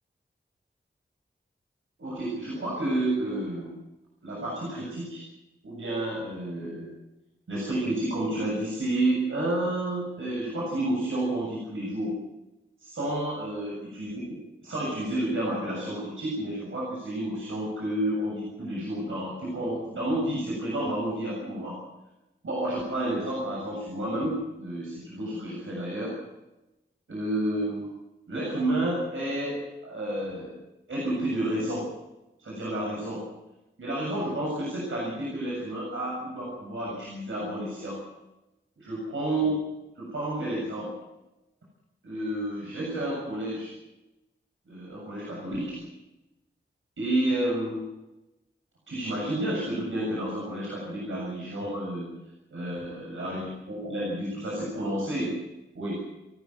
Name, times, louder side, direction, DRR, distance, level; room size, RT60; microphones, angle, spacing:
voice 1, 2.0-3.7 4.2-5.2 5.6-6.9 7.5-12.2 12.8-14.1 14.6-21.8 22.4-26.2 27.1-27.9 28.3-30.6 30.9-31.9 32.4-33.3 33.8-38.0 38.8-39.6 40.0-40.9 42.0-43.7 44.7-45.8 47.0-47.8 48.9-52.1 52.5-55.4 55.7-56.0, right 1 dB, 85° right, -4 dB, 7.3 m, -30 dB
30.0 x 13.5 x 7.9 m, 0.96 s
cardioid pair, 45°, 20 cm